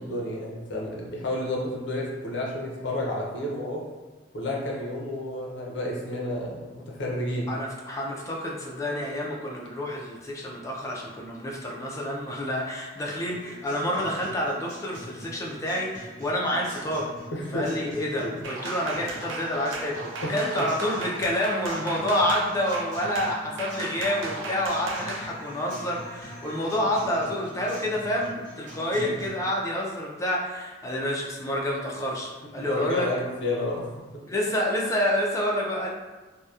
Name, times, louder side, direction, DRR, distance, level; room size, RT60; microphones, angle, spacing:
voice 1, 0.0-3.8 4.3-7.6 17.3-17.7 20.2-20.7 28.9-29.2 32.6-33.9, left 1 dB, 65° left, -2 dB, 0.5 m, -31 dB
voice 2, 7.5-17.1 17.5-33.1 34.2-35.9, left 1 dB, 15° left, -3 dB, 0.4 m, -28 dB
Guitar, 13.3-29.3, equal, 45° right, 1.0 m, -44 dB
sound 1, 18.4-25.3, right 3 dB, 90° right, 0.4 m, -36 dB
2.7 x 2.1 x 2.3 m, 1.2 s
head